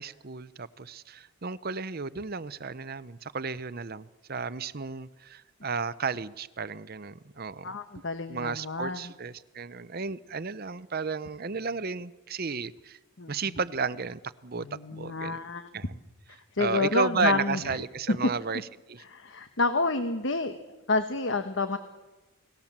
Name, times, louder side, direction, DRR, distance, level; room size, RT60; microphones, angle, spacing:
voice 1, 0.0-7.8 8.3-13.0 13.3-16.0 16.3-19.0, right 5 dB, 45° right, 0.7 m, -33 dB
voice 2, 7.6-9.1 13.2-13.3 14.6-15.7 16.5-17.6 19.1-20.6 20.9-21.8, left 3 dB, 55° left, 1.3 m, -29 dB
29.5 x 19.5 x 7.4 m
head